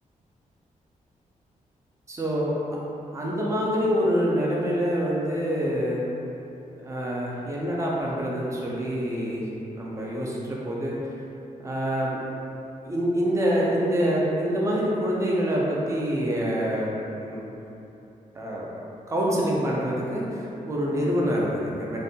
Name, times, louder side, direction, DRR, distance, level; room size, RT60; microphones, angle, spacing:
voice 1, 2.1-2.6 3.1-6.0 6.8-9.4 9.8-11.0 11.6-12.2 12.8-17.4 18.3-18.7 19.1-22.0, equal, 20° right, -4 dB, 0.3 m, -26 dB
2.6 x 2.1 x 2.6 m, 2.9 s
wide cardioid pair, 175°, 14 cm